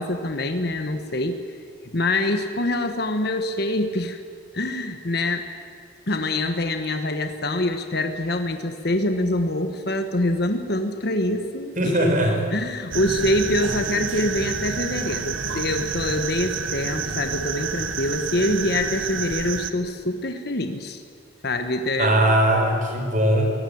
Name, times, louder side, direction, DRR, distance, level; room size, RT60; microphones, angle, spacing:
voice 1, 0.0-1.4 1.9-4.2 4.5-5.5 6.1-12.1 12.5-21.0 21.4-22.1, left 1 dB, 50° left, 7 dB, 1.3 m, -25 dB
voice 2, 11.8-12.4 22.0-23.5, right 1 dB, 40° right, 2 dB, 4.4 m, -20 dB
sound 1, 12.9-19.7, right 5 dB, 75° right, 1.3 m, -29 dB
23.5 x 18.5 x 8.6 m, 2.2 s
head